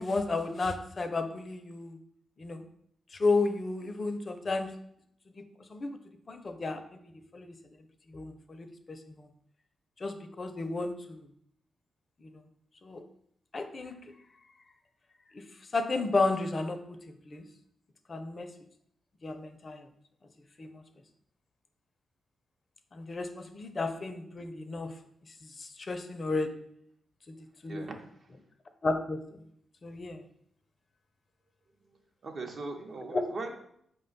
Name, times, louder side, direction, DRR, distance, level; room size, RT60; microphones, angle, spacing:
voice 1, 0.0-2.0 2.4-2.6 3.1-4.7 5.7-6.0 6.3-6.8 7.3-7.5 8.1-9.3 10.0-11.2 12.2-12.4 12.8-13.0 13.5-13.9 15.3-15.4 15.7-17.0 17.3-17.4 18.1-18.5 19.2-19.8 20.6-20.8 22.9-24.9 25.4-26.5 27.6-27.9 28.8-29.2 29.8-30.2 33.1-33.2, left 3 dB, 45° left, 7 dB, 0.4 m, -32 dB
voice 2, 27.6-28.3 31.9-33.6, right 3 dB, 60° right, 3 dB, 0.6 m, -40 dB
5.0 x 2.2 x 3.8 m, 0.70 s
supercardioid pair, 55°, 0 cm